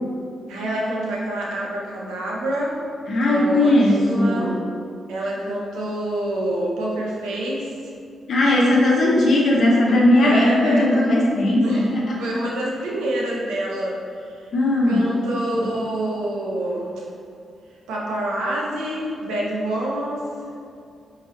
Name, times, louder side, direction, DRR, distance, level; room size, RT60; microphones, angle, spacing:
voice 1, 0.5-2.8 3.2-4.6 5.1-7.9 10.2-10.9 11.6-14.5 14.9-16.9 17.9-20.2, right 1 dB, 85° right, -4 dB, 0.8 m, -26 dB
voice 2, 3.1-4.5 8.3-12.1 14.5-15.0, left 1 dB, 65° left, -3 dB, 0.9 m, -18 dB
4.4 x 3.6 x 3.1 m, 2.4 s
supercardioid pair, 45°, 0 cm